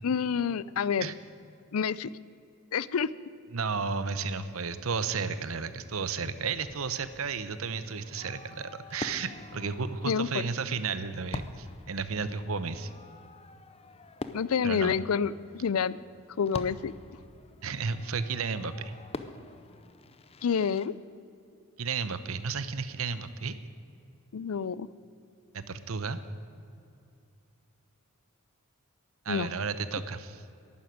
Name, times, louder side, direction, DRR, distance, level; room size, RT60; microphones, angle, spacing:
voice 1, 0.0-1.1 1.7-2.1 2.7-3.1 10.0-10.4 14.3-15.9 16.4-16.9 20.4-20.9 24.3-24.9 29.3-29.5, left 6 dB, 75° left, 19 dB, 0.5 m, -28 dB
voice 2, 3.5-12.9 14.6-15.0 17.6-18.9 21.8-23.5 25.5-26.2 29.2-30.4, right 5 dB, 70° right, 13 dB, 0.8 m, -33 dB
Fireworks, 6.6-20.9, left 2 dB, 30° left, 0.6 m, -46 dB
11.5 x 11.0 x 9.4 m, 2.6 s
head